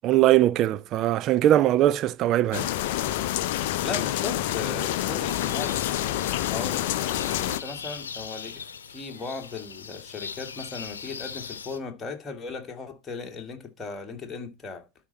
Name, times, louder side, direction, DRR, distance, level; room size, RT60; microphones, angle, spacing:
voice 1, 0.0-2.7, right 13 dB, 35° right, 0.5 m, -21 dB
sound 1, 2.5-7.6, left 13 dB, 50° left, 0.6 m, -27 dB
voice 2, 3.8-5.8 6.5-6.9 7.4-14.9, left 4 dB, 15° left, 2.1 m, -37 dB
sound 2, 5.3-11.8, left 6 dB, 65° left, 0.9 m, -39 dB
12.0 x 4.5 x 4.1 m
figure-of-eight pair, 90°, 0 cm